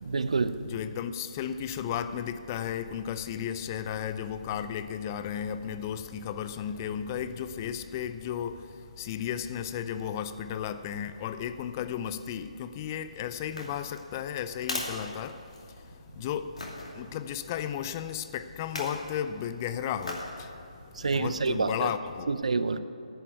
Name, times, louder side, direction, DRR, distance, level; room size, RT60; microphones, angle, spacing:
voice 1, 0.0-0.6 21.0-21.9 22.3-22.8, right 4 dB, 65° right, 0.5 m, -27 dB
voice 2, 0.6-16.6 16.9-20.6 21.0-22.4, left 9 dB, 25° left, 0.4 m, -34 dB
sound 1, 13.4-15.9 16.6-16.9 18.6-19.1 20.0-20.4 20.9-21.0, left 2 dB, 65° left, 2.5 m, -38 dB
10.0 x 7.5 x 9.2 m
figure-of-eight pair, 140°, 4 cm